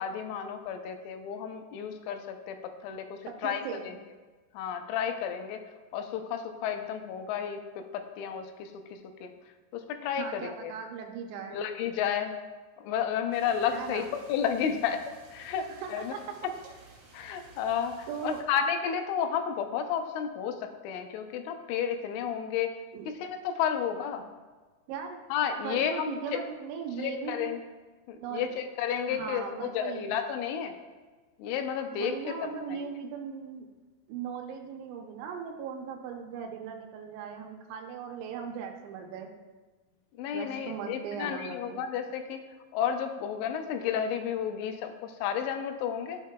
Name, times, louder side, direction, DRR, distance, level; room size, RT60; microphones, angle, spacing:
voice 1, 0.0-4.0 4.5-5.6 5.9-9.3 9.7-10.7 11.5-12.4 12.8-15.0 15.3-16.2 17.1-22.8 23.1-24.2 25.3-26.4 27.0-27.6 28.1-30.7 31.4-32.8 40.2-42.4 42.7-46.2, left 8 dB, 85° left, 6 dB, 2.9 m, -32 dB
voice 2, 3.3-3.9 10.2-11.6 13.7-14.1 15.7-16.2 18.1-18.4 22.9-23.1 24.9-25.2 25.6-27.5 28.2-28.5 29.1-30.1 31.9-33.7 34.1-39.3 40.3-41.8, right 6 dB, 80° right, 3 dB, 2.8 m, -38 dB
sound 1, 13.3-18.4, right 3 dB, 50° right, 1.8 m, -55 dB
13.5 x 5.5 x 2.2 m, 1.3 s
omnidirectional pair, 5.6 m